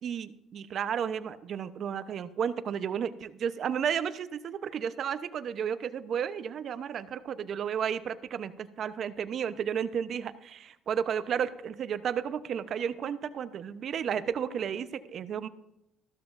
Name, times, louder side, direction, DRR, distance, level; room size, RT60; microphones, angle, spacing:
voice 1, 0.0-15.5, right 8 dB, 55° right, 12 dB, 0.9 m, -33 dB
14.5 x 13.0 x 2.6 m, 0.84 s
supercardioid pair, 75°, 0 cm